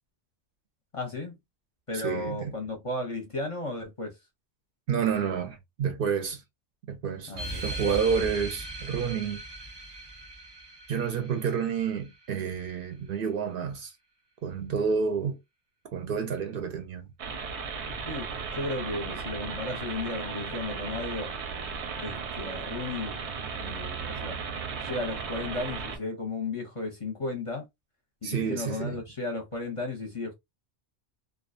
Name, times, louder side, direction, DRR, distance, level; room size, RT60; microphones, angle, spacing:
voice 1, 0.9-1.4 1.9-4.2 7.3-7.6 18.1-21.3 22.0-23.3 23.5-24.4 24.8-27.7 28.2-30.3, left 2 dB, 35° left, 0.6 m, -34 dB
voice 2, 2.0-2.5 4.9-6.4 6.9-7.4 7.6-9.4 10.9-13.9 14.4-15.4 15.9-17.1 28.2-29.0, right 6 dB, 65° right, 0.7 m, -29 dB
sound 1, 7.3-12.4, right 2 dB, 35° right, 0.4 m, -39 dB
sound 2, 17.2-26.0, right 5 dB, 90° right, 1.0 m, -36 dB
2.4 x 2.2 x 2.4 m
omnidirectional pair, 1.1 m